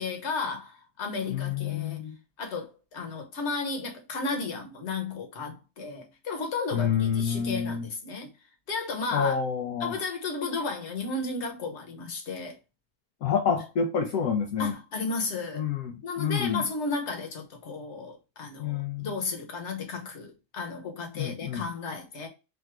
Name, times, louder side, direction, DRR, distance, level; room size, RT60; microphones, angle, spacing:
voice 1, 0.0-2.0 2.4-8.3 8.7-9.4 9.8-12.6 14.6-15.7 16.0-22.3, left 4 dB, 45° left, 1.3 m, -33 dB
voice 2, 1.3-2.2 6.7-7.9 9.1-10.0 13.2-14.7 15.5-16.6 18.6-19.1 21.2-21.6, left 7 dB, 65° left, 1.0 m, -28 dB
3.6 x 2.6 x 4.5 m
omnidirectional pair, 1.8 m